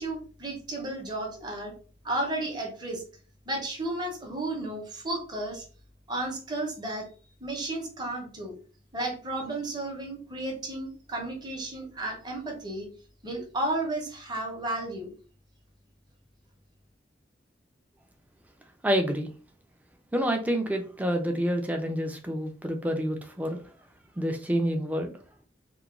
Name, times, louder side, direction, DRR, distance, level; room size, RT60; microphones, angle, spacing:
voice 1, 0.0-1.7 2.0-3.0 3.5-5.6 6.1-7.1 7.4-8.6 8.9-12.9 13.2-15.1, right 2 dB, 25° right, 0.7 m, -33 dB
voice 2, 18.8-19.3 20.1-23.6 24.2-25.1, equal, 10° right, 0.3 m, -28 dB
2.9 x 2.2 x 2.4 m
head